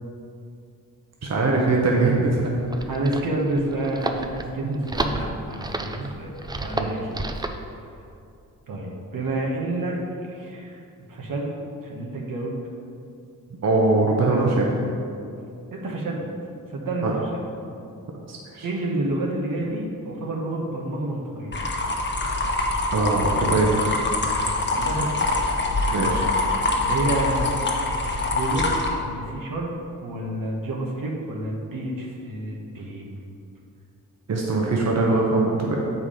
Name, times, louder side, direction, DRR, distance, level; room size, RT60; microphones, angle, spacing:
voice 1, 1.2-2.5 4.6-4.8 6.0-6.1 6.8-7.0 13.6-14.7 17.0-17.1 18.3-18.7 22.9-23.8 25.9-26.3 34.3-35.8, right 3 dB, 50° right, -2 dB, 1.0 m, -22 dB
sound 1, 2.5-7.6, right 2 dB, 10° right, 0.4 m, -31 dB
voice 2, 2.9-6.3 6.6-7.1 8.7-10.0 10.3-10.8 11.1-11.5 11.8-12.5 14.2-14.7 15.7-16.2 16.7-17.3 18.6-21.6 24.7-25.3 26.8-27.5 28.3-29.7 30.0-33.1, right 2 dB, 75° right, -1 dB, 1.3 m, -29 dB
sound 2, 21.5-28.9, left 2 dB, 30° left, 1.1 m, -24 dB
7.4 x 4.8 x 4.9 m, 2.5 s
cardioid pair, 90°, 34 cm